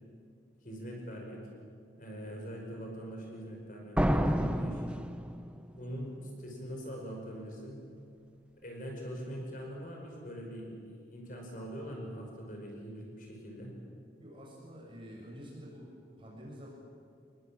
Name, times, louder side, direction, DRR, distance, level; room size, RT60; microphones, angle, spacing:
voice 1, 0.6-1.4 2.0-4.9 5.8-7.8 8.6-13.7, equal, 50° left, 1 dB, 5.4 m, -42 dB
sound 1, 4.0-5.8, equal, 5° right, 0.8 m, -29 dB
voice 2, 14.2-16.7, equal, 30° right, -3 dB, 6.9 m, -48 dB
27.5 x 20.5 x 8.8 m, 2.3 s
head